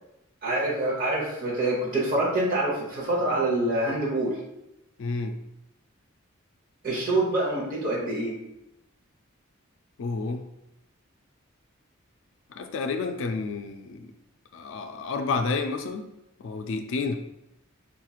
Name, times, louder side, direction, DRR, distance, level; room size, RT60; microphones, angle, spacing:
voice 1, 0.4-4.4 6.8-8.3, right 2 dB, 45° right, -5 dB, 1.0 m, -26 dB
voice 2, 5.0-5.4 10.0-10.4 12.5-14.1 14.5-16.0 16.4-17.2, left 4 dB, 65° left, 6 dB, 0.3 m, -30 dB
4.1 x 3.0 x 2.4 m, 0.88 s
head